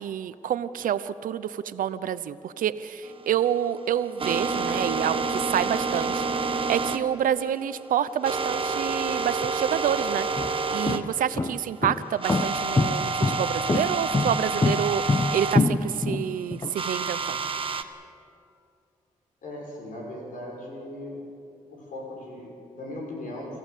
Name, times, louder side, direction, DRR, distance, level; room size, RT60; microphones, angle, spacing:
voice 1, 0.0-10.3 10.7-17.4, right 9 dB, 85° right, 14 dB, 0.7 m, -28 dB
sound 1, 3.1-11.0 11.3-11.4 11.8-11.9 12.2-15.6 16.7-17.8, right 4 dB, 40° right, 1.2 m, -29 dB
sound 2, 9.4-9.5 10.2-16.7, left 3 dB, 30° left, 1.0 m, -25 dB
voice 2, 19.4-21.2 21.7-23.6, left 1 dB, 80° left, -1 dB, 6.2 m, -38 dB
27.0 x 14.5 x 8.3 m, 2.6 s
cardioid pair, 65°, 14 cm